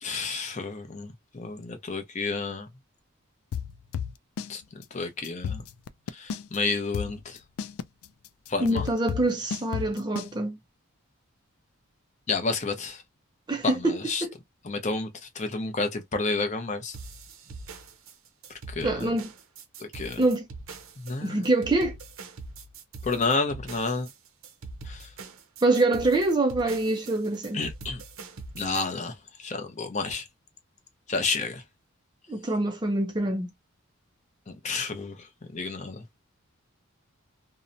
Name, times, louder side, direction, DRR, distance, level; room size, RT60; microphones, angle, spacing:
voice 1, 0.0-2.7 4.5-5.6 6.1-7.4 8.5-8.8 12.3-13.0 13.6-14.3 14.6-17.0 18.7-19.1 19.8-20.2 21.0-21.5 23.0-24.1 24.8-25.1 27.5-28.0 28.5-30.3 31.1-31.6 34.5-36.0, left 3 dB, 30° left, 0.6 m, -30 dB
sound 1, 3.5-4.5 4.8-4.9 5.2-6.6 6.9-10.3, left 7 dB, 80° left, 0.3 m, -32 dB
voice 2, 8.6-10.6 13.5-14.3 18.8-19.3 20.2-20.5 21.2-22.0 25.6-27.6 32.3-33.5, right 2 dB, 20° right, 0.4 m, -25 dB
sound 2, 16.9-28.8, right 3 dB, 65° right, 0.6 m, -42 dB
2.7 x 2.0 x 2.5 m
head